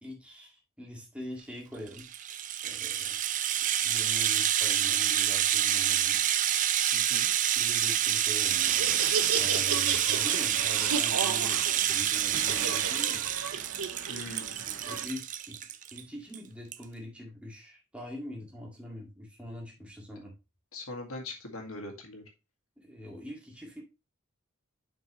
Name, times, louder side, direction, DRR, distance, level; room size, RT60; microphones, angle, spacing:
voice 1, 0.0-2.1 2.6-3.2 3.8-6.2 7.5-9.0 9.4-13.3 14.6-15.6 15.9-20.3 22.8-23.8, equal, 5° right, -2 dB, 1.9 m, -43 dB
Rattle (instrument), 1.9-16.0 16.3-16.4 16.7-16.8, right 11 dB, 35° right, 0.4 m, -28 dB
voice 2, 6.9-7.3 14.1-14.7 20.7-22.2, left 2 dB, 90° left, 3 dB, 1.8 m, -41 dB
Laughter, 8.5-15.0, right 6 dB, 85° right, 0.9 m, -34 dB
7.4 x 5.3 x 3.0 m, 0.26 s
head